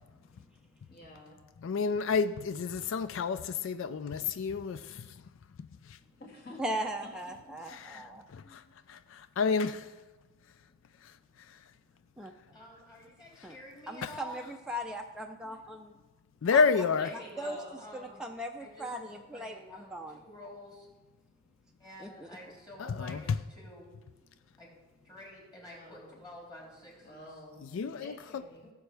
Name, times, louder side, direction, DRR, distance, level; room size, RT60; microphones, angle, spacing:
voice 1, 0.9-1.4 6.2-7.5 8.1-8.6 17.0-17.8 25.6-26.2 27.0-28.7, left 2 dB, 45° left, 2.4 m, -50 dB
voice 2, 1.6-5.1 5.9-6.0 7.9-8.0 8.3-8.6 8.9-9.8 14.0-14.1 16.4-17.1 22.8-23.4 27.7-28.4, left 5 dB, 65° left, 0.4 m, -29 dB
voice 3, 6.6-8.2 12.2-12.3 13.4-13.6 13.9-15.9 16.5-16.6 17.4-17.6 17.9-20.2 22.0-22.3, right 1 dB, 5° right, 0.4 m, -38 dB
voice 4, 12.5-14.4 16.8-18.2 18.6-20.9 21.8-23.9 24.6-24.7 25.0-27.4, left 1 dB, 20° left, 3.4 m, -49 dB
17.0 x 7.0 x 3.3 m
head